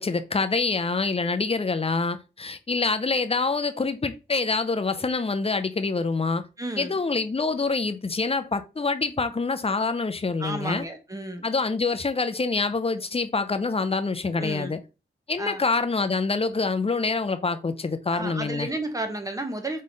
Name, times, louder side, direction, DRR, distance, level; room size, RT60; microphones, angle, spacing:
voice 1, 0.0-6.4 6.8-10.9 11.4-14.8 15.3-18.7, left 4 dB, 30° left, 0.5 m, -26 dB
voice 2, 6.6-7.0 10.4-11.4 14.4-14.8 15.4-15.6 18.1-19.8, right 1 dB, 15° right, 0.8 m, -32 dB
3.8 x 3.2 x 3.9 m
wide cardioid pair, 85°, 20 cm